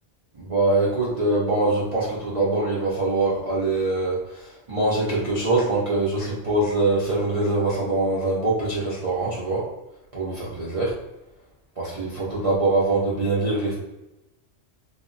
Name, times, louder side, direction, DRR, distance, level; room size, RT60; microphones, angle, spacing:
voice 1, 0.4-9.7 10.1-10.9 11.8-13.8, right 2 dB, 65° right, -7 dB, 0.3 m, -23 dB
2.1 x 2.1 x 3.7 m, 0.97 s
omnidirectional pair, 1.3 m